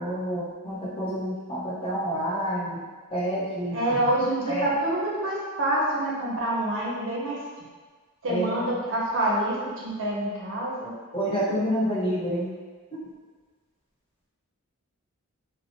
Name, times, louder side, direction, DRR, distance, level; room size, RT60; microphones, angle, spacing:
voice 1, 0.0-2.8 3.1-4.1 4.5-4.7 8.3-8.6 11.1-12.5, equal, 25° left, -9 dB, 0.8 m, -28 dB
voice 2, 3.7-7.4 8.2-10.9, right 1 dB, 60° right, -4 dB, 0.6 m, -27 dB
2.8 x 2.0 x 2.7 m, 1.4 s
head